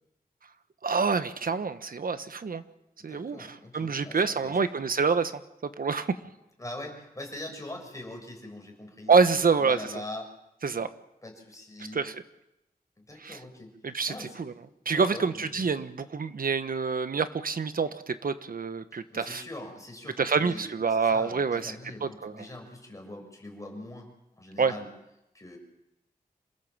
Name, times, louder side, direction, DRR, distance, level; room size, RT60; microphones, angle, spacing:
voice 1, 0.8-2.6 3.0-6.2 9.1-9.9 10.6-10.9 11.9-12.2 13.2-13.4 13.8-14.5 14.8-19.4 20.2-21.8 22.0-22.5 24.6-24.7, right 5 dB, 65° right, 11 dB, 1.3 m, -27 dB
voice 2, 3.0-4.7 6.6-10.2 11.2-12.0 13.1-13.7 14.1-14.4 14.9-15.7 18.9-24.1 24.4-24.9 25.3-25.6, left 1 dB, 20° left, 2 dB, 6.6 m, -42 dB
27.0 x 16.5 x 7.5 m, 0.89 s
wide cardioid pair, 75°, 16 cm